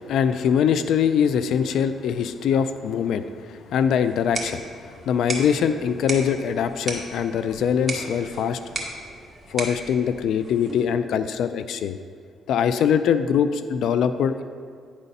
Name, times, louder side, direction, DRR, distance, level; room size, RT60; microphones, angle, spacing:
voice 1, 0.0-4.7 5.1-8.6 9.5-12.0 12.5-14.4, left 7 dB, 75° left, 11 dB, 0.3 m, -23 dB
sound 1, 4.0-11.0, right 2 dB, 25° right, 1.4 m, -36 dB
9.8 x 4.2 x 5.2 m, 2.2 s
cardioid pair, 90°, 0 cm